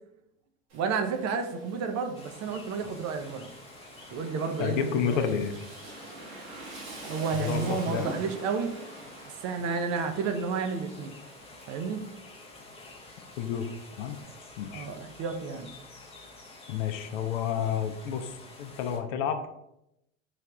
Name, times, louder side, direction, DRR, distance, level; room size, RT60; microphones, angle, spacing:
voice 1, 0.7-3.5 4.1-5.4 7.0-8.7 9.4-11.2 11.7-12.0 14.7-15.7, right 5 dB, 40° right, 6 dB, 0.5 m, -31 dB
Rain, 0.7-14.2, right 2 dB, 85° right, 1.4 m, -47 dB
sound 1, 2.1-19.0, left 2 dB, 15° left, 0.6 m, -50 dB
voice 2, 4.6-5.5 7.3-8.1 13.4-13.7 14.0-14.2 14.6-14.9 16.7-19.6, left 8 dB, 65° left, 8 dB, 0.6 m, -30 dB
3.3 x 2.4 x 3.3 m, 0.83 s
hypercardioid pair, 90°, 40 cm